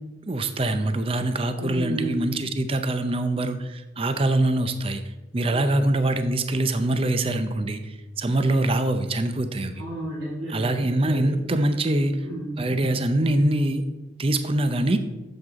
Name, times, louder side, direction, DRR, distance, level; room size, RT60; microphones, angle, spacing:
voice 1, 0.3-5.0 5.3-9.7 10.5-12.2 12.6-13.9 14.2-15.0, right 1 dB, 30° right, 9 dB, 0.6 m, -24 dB
voice 2, 1.6-2.3 5.5-5.8 9.7-11.4 12.2-12.6, right 1 dB, 80° right, -7 dB, 2.4 m, -32 dB
8.0 x 7.5 x 3.6 m, 1.0 s
head